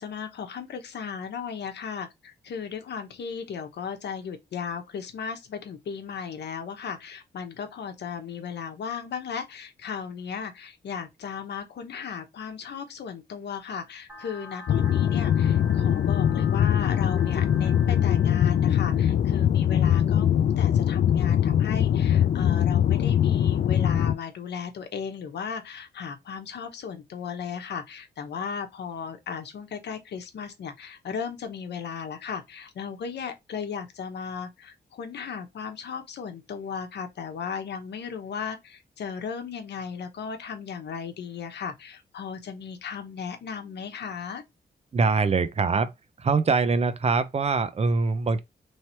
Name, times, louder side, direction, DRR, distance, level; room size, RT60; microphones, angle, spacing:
voice 1, 0.0-44.4, left 6 dB, 80° left, 0.9 m, -36 dB
sound 1, 14.1-19.1, left 3 dB, 10° right, 1.4 m, -45 dB
sound 2, 14.7-24.1, left 10 dB, 60° left, 0.4 m, -22 dB
voice 2, 44.9-45.9 46.2-48.4, right 4 dB, 35° right, 0.5 m, -23 dB
3.2 x 2.9 x 4.3 m
cardioid pair, 90°, 17 cm